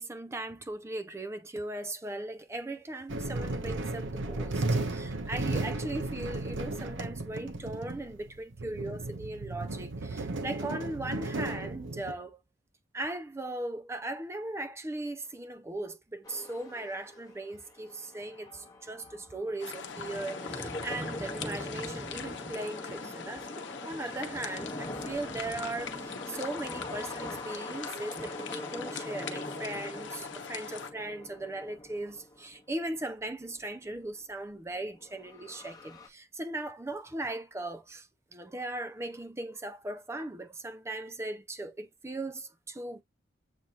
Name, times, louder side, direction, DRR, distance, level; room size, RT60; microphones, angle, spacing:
voice 1, 0.0-12.4 12.9-43.0, right 2 dB, 15° right, 0.4 m, -38 dB
sound 1, 3.1-12.1, right 2 dB, 90° right, 0.9 m, -34 dB
sound 2, 16.2-34.3 34.6-36.1, left 1 dB, 20° left, 1.0 m, -44 dB
sound 3, 19.6-30.9, left 6 dB, 75° left, 0.8 m, -42 dB
7.4 x 2.8 x 2.4 m
head